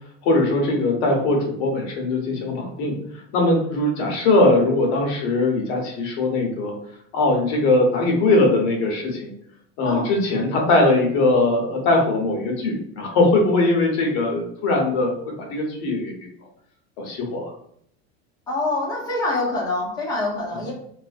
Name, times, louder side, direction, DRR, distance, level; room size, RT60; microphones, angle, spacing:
voice 1, 0.2-3.0 3.3-6.7 7.1-9.3 9.8-16.3 17.0-17.5, left 2 dB, 75° left, 1 dB, 0.8 m, -20 dB
voice 2, 18.5-20.7, left 2 dB, 10° left, -4 dB, 0.5 m, -25 dB
2.4 x 2.0 x 2.5 m, 0.67 s
supercardioid pair, 145°, 32 cm